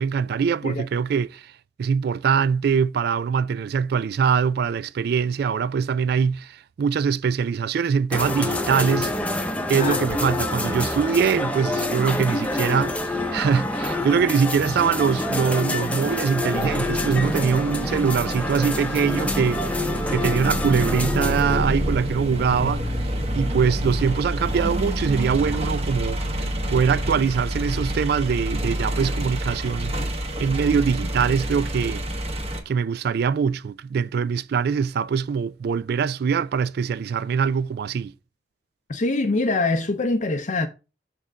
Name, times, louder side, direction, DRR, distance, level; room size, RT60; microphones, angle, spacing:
voice 1, 0.0-1.5 1.8-9.1 9.7-19.6 20.1-30.0 30.4-32.0 32.7-38.1, right 6 dB, 60° right, 0.3 m, -23 dB
sound 1, 8.1-21.6, left 1 dB, 10° left, 0.7 m, -27 dB
voice 2, 9.7-10.1 38.9-40.7, left 2 dB, 45° left, 0.6 m, -24 dB
sound 2, 16.5-32.6, right 1 dB, 35° right, 1.2 m, -27 dB
6.5 x 3.7 x 5.0 m
head